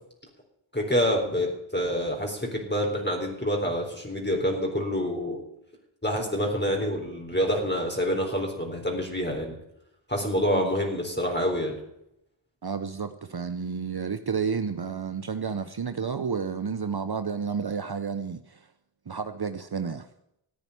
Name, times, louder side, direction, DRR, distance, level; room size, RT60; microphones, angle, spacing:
voice 1, 0.7-5.4 6.0-9.6 10.1-11.7, equal, 20° left, 3.9 m, -27 dB
voice 2, 12.6-18.7 19.1-20.1, right 6 dB, 50° right, 0.8 m, -31 dB
14.5 x 9.0 x 9.7 m
wide cardioid pair, 50°, 50 cm